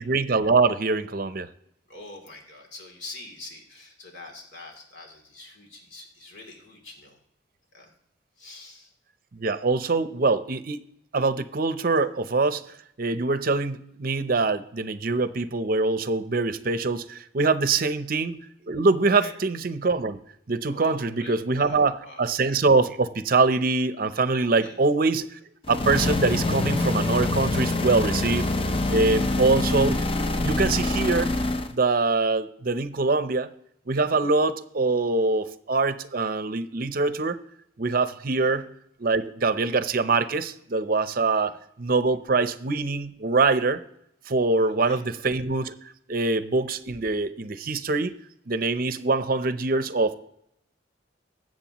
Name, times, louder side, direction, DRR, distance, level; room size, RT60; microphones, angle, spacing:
voice 1, 0.0-1.5 9.4-10.8 11.1-20.2 20.5-25.4 25.7-28.5 28.9-30.0 30.4-31.3 31.7-33.5 33.9-37.4 37.8-38.7 39.0-43.8 44.3-45.7 46.1-48.1 48.5-50.2, right 3 dB, 50° right, 12 dB, 0.6 m, -24 dB
voice 2, 1.9-7.2 7.7-7.9 8.4-8.9 17.7-18.0 19.2-19.4 20.7-22.2 24.3-24.8 29.1-29.4 38.4-38.6 41.4-41.5 44.6-45.0, left 2 dB, 70° left, 1 dB, 2.9 m, -45 dB
sound 1, 25.6-31.7, left 2 dB, 30° left, 0.6 m, -25 dB
20.5 x 7.7 x 3.0 m, 0.77 s
head